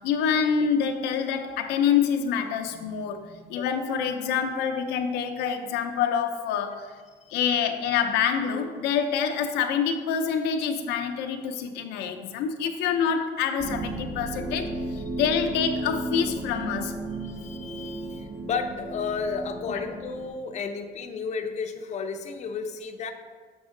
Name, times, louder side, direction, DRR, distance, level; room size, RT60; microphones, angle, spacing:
voice 1, 0.0-6.9 7.3-16.9 19.7-19.8, left 7 dB, 85° left, 5 dB, 0.6 m, -26 dB
sound 1, 13.6-20.3, right 2 dB, 45° right, 1.9 m, -34 dB
voice 2, 17.2-23.1, left 5 dB, 40° left, 6 dB, 0.6 m, -33 dB
6.2 x 6.1 x 3.7 m, 1.5 s
cardioid pair, 110°, 17 cm